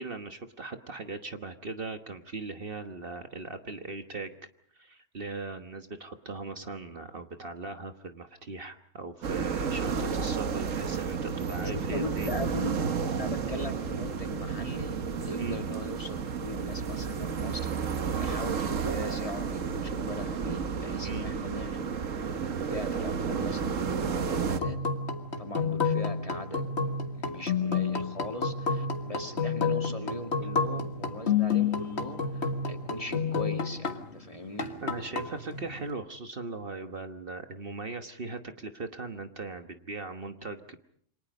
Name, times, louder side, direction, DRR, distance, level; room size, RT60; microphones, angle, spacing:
voice 1, 0.0-4.3 4.7-12.3 15.4-15.6 21.0-21.3 34.8-40.8, right 3 dB, 50° right, 7 dB, 1.4 m, -39 dB
sound 1, 9.2-24.6, right 6 dB, 85° right, 1.6 m, -32 dB
voice 2, 11.9-12.8 13.2-14.9 15.2-22.0 22.3-24.8 25.4-34.7, left 1 dB, 25° left, 4 dB, 2.4 m, -39 dB
sound 2, 24.5-34.2 34.6-35.9, left 5 dB, 60° left, 2.0 m, -30 dB
28.5 x 25.5 x 5.3 m, 0.63 s
omnidirectional pair, 1.3 m